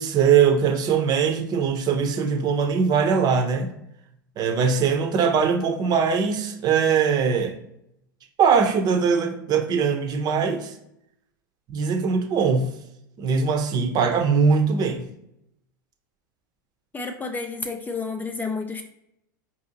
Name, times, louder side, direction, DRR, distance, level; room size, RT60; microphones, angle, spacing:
voice 1, 0.0-3.7 4.4-7.5 8.4-10.7 11.7-12.7 13.2-15.1, right 6 dB, 40° right, 6 dB, 0.7 m, -21 dB
voice 2, 16.9-18.8, left 4 dB, 15° left, 6 dB, 0.4 m, -30 dB
4.7 x 2.6 x 2.9 m, 0.77 s
hypercardioid pair, 90°, 11 cm